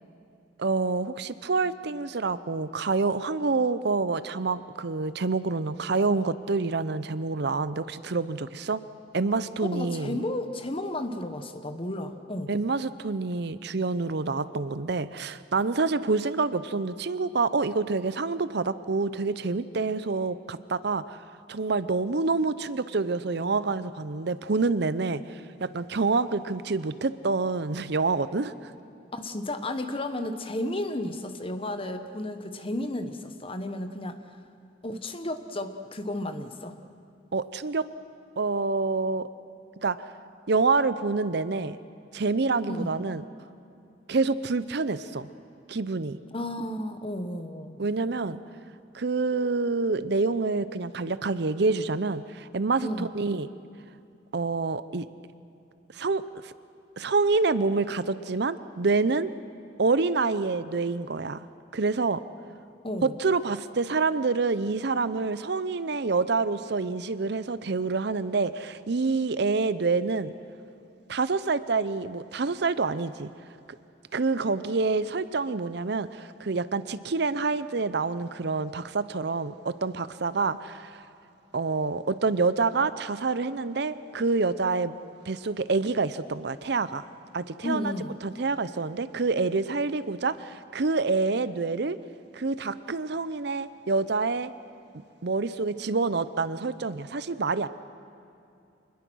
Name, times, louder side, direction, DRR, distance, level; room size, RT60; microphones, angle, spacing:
voice 1, 0.6-8.8 9.1-10.2 12.5-21.2 21.5-28.7 37.3-37.8 38.4-39.3 39.8-40.0 40.5-41.8 42.1-43.2 44.1-45.3 45.7-46.2 47.8-48.4 48.9-53.5 54.3-55.1 55.9-56.5 57.0-59.3 59.8-61.5 61.7-62.2 63.0-70.3 71.1-73.3 74.1-81.0 81.5-85.0 85.3-87.1 87.3-87.9 88.2-92.0 92.3-94.5 95.2-97.7, right 4 dB, 60° right, 15 dB, 0.7 m, -27 dB
voice 2, 9.7-12.5 29.1-34.2 34.8-36.7 42.6-42.9 46.3-47.8 52.8-53.1 62.8-63.1 87.6-88.1, left 1 dB, 30° left, 8 dB, 1.2 m, -33 dB
26.0 x 20.5 x 6.3 m, 2.7 s
head